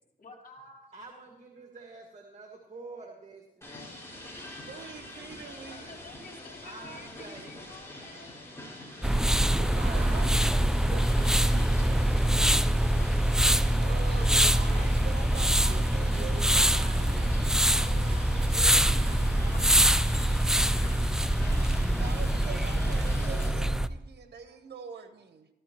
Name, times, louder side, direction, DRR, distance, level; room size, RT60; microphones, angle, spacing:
voice 1, 0.2-0.9 5.7-8.3 13.3-14.3 14.6-15.0 19.6-20.5 20.7-21.6, left 3 dB, 55° left, -3 dB, 3.5 m, -51 dB
voice 2, 0.9-3.8 6.6-7.5 9.8-12.7 15.6-20.3, right 3 dB, 45° right, 1 dB, 1.8 m, -47 dB
sound 1, 3.6-23.5, left 1 dB, 15° left, 5.5 m, -45 dB
voice 3, 4.7-6.0 9.5-10.5 10.9-12.0 13.8-17.5 21.9-25.5, right 5 dB, 80° right, 8 dB, 0.9 m, -44 dB
sound 2, 9.0-23.9, right 1 dB, 5° right, 0.4 m, -24 dB
15.5 x 13.0 x 3.0 m, 0.95 s
cardioid pair, 80°, 18 cm